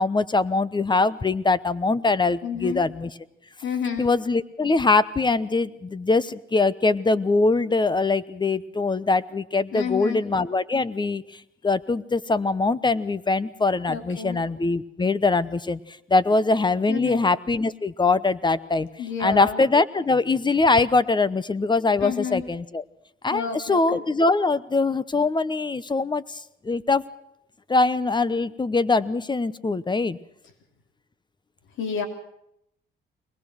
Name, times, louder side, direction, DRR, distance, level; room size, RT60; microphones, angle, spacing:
voice 1, 0.0-3.1 4.0-18.9 19.2-22.8 23.2-27.0 27.7-30.2, left 3 dB, 20° left, 17 dB, 0.9 m, -22 dB
voice 2, 2.4-2.9 3.6-4.1 9.7-10.2 13.9-14.4 16.9-17.2 19.0-19.6 22.0-22.4 23.3-24.0 31.8-32.1, left 7 dB, 75° left, 6 dB, 3.5 m, -30 dB
22.5 x 20.0 x 6.4 m, 0.77 s
cardioid pair, 90°, 20 cm